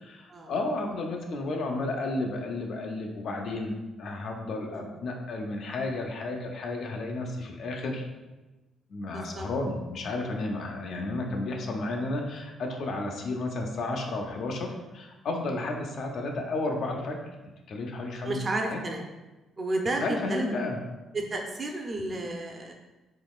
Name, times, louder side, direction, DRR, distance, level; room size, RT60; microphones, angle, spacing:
voice 1, 0.0-3.7 4.0-8.1 8.9-17.2 17.7-18.4 18.6-18.8 20.0-20.8, left 2 dB, 65° left, 1 dB, 0.5 m, -32 dB
voice 2, 9.1-9.5 10.9-11.0 18.2-19.1 19.6-20.4 21.1-22.7, right 2 dB, 35° right, 1 dB, 0.6 m, -32 dB
3.8 x 3.0 x 2.3 m, 1.1 s
cardioid pair, 90°, 0 cm